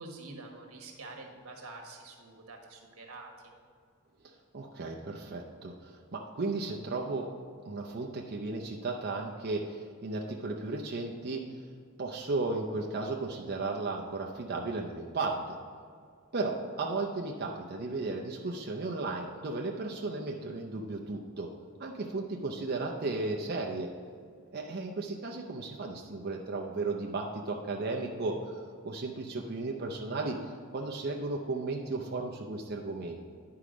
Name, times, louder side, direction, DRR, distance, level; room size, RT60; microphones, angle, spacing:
voice 1, 0.0-3.6, right 3 dB, 85° right, 2 dB, 1.3 m, -47 dB
voice 2, 4.5-7.3 7.6-11.6 12.0-15.6 16.3-21.5 21.8-23.9 24.5-33.2, right 3 dB, 50° right, -1 dB, 0.6 m, -35 dB
10.0 x 4.7 x 5.0 m, 2.2 s
head